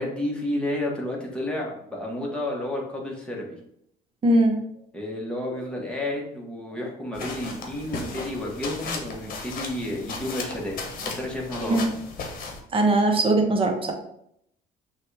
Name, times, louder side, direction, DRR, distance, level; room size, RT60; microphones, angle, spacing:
voice 1, 0.0-3.6 4.9-10.8 11.0-11.8, left 1 dB, 5° left, -2 dB, 1.3 m, -31 dB
voice 2, 4.2-4.6 11.7-11.9 12.7-13.9, right 2 dB, 30° right, 3 dB, 0.9 m, -20 dB
sound 1, 7.1-12.6, left 4 dB, 55° left, 1.0 m, -35 dB
5.7 x 2.5 x 3.3 m, 0.73 s
cardioid pair, 110°, 17 cm